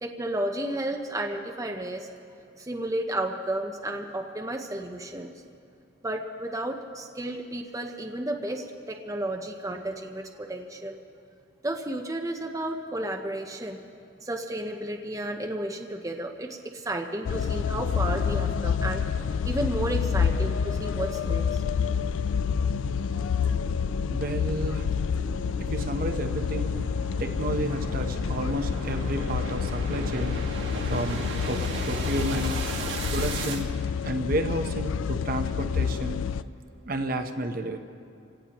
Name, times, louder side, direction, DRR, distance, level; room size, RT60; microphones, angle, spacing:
voice 1, 0.0-2.1 2.6-5.3 6.0-11.0 11.6-13.8 14.2-19.0 19.4-21.6, right 1 dB, 15° right, 2 dB, 0.7 m, -32 dB
sound 1, 17.2-36.4, left 6 dB, 85° left, 0.4 m, -28 dB
sound 2, 22.1-33.6, right 2 dB, 80° right, 1.8 m, -37 dB
voice 2, 24.1-24.9 25.7-26.7 27.2-30.4 30.9-32.5 33.1-33.7 34.0-36.2 36.8-37.8, right 1 dB, 45° right, 6 dB, 0.8 m, -31 dB
26.0 x 17.5 x 3.0 m, 2.5 s
head